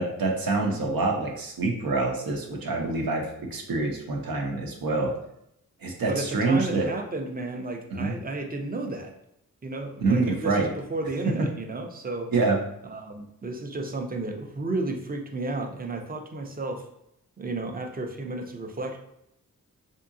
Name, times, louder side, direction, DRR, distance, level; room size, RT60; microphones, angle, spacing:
voice 1, 0.0-5.1 5.8-6.9 7.9-8.1 10.0-10.7 12.3-12.6, right 3 dB, 85° right, 1 dB, 0.8 m, -26 dB
voice 2, 6.1-9.1 9.6-12.3 12.8-16.9 17.4-19.0, right 2 dB, 25° right, 4 dB, 0.5 m, -33 dB
3.6 x 2.7 x 2.6 m, 0.78 s
wide cardioid pair, 100°, 34 cm